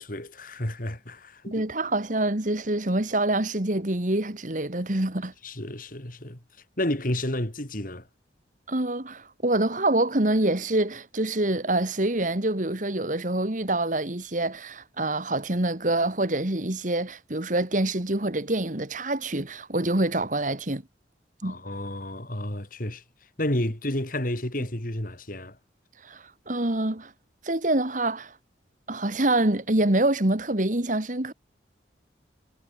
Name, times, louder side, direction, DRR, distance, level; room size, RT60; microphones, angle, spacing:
voice 1, 0.0-1.6 5.4-6.4 6.8-8.1 21.4-23.0 23.4-25.6, left 1 dB, 45° left, 3.7 m, -31 dB
voice 2, 1.5-5.3 8.7-20.8 21.4-21.6 26.0-27.1 27.4-28.4 28.9-31.3, right 1 dB, 45° right, 2.0 m, -26 dB
head